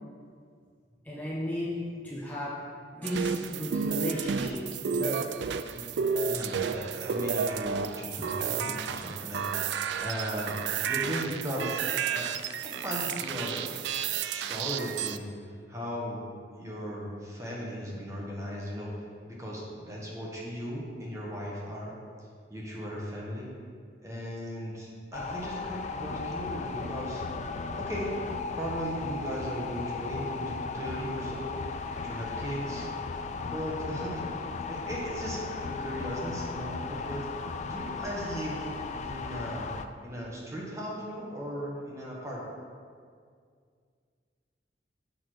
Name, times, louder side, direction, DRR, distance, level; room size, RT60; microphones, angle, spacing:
voice 1, 1.0-1.8 2.0-2.6 2.9-5.3, equal, 10° left, -6 dB, 0.8 m, -34 dB
sound 1, 3.0-15.2, right 6 dB, 75° right, 0.3 m, -32 dB
voice 2, 6.2-11.8 12.1-12.3 12.6-13.7 14.3-15.3 15.7-16.2 16.6-22.0 22.5-23.5 24.0-27.2 27.7-28.2 28.5-31.5 32.0-32.9 33.4-34.2 34.6-37.3 37.6-38.7 39.0-39.7 40.0-42.4, equal, 15° right, -4 dB, 1.4 m, -37 dB
sound 2, 25.1-39.9, left 4 dB, 40° left, 0.3 m, -36 dB
6.8 x 6.0 x 4.6 m, 2.1 s
head